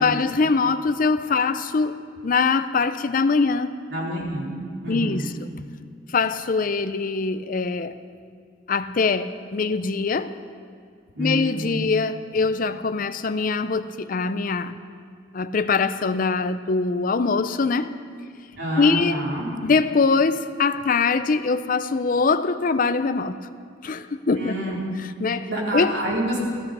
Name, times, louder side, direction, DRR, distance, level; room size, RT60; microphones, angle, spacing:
voice 1, 0.0-3.8 4.9-5.5 6.1-7.9 8.7-10.3 11.2-14.8 15.3-17.9 18.8-19.2 19.6-23.5 23.8-24.5 25.2-25.5 25.7-26.0, left 4 dB, 45° left, 11 dB, 0.5 m, -23 dB
voice 2, 3.9-4.5 4.8-5.3 11.1-11.8 18.6-19.5 24.4-24.8 25.5-26.4, equal, 70° right, -4 dB, 3.9 m, -28 dB
16.0 x 13.5 x 5.4 m, 2.2 s
head